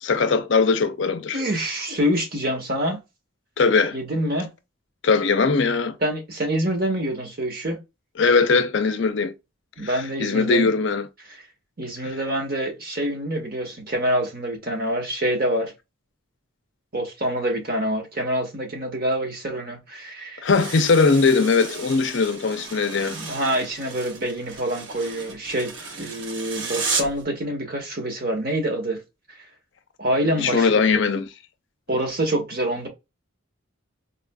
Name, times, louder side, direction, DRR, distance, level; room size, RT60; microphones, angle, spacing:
voice 1, 0.0-1.4 3.6-4.0 5.0-6.0 8.2-9.3 9.8-11.1 20.4-23.2 30.4-31.3, left 4 dB, 55° left, 0.5 m, -20 dB
voice 2, 1.3-3.0 3.9-4.5 6.0-7.8 9.8-10.7 11.8-15.7 16.9-20.4 23.1-25.7 26.0-29.0 30.0-31.0 31.9-32.9, right 1 dB, 45° right, 1.1 m, -26 dB
sound 1, 20.5-27.2, right 4 dB, 60° right, 0.8 m, -33 dB
4.1 x 2.4 x 2.2 m
head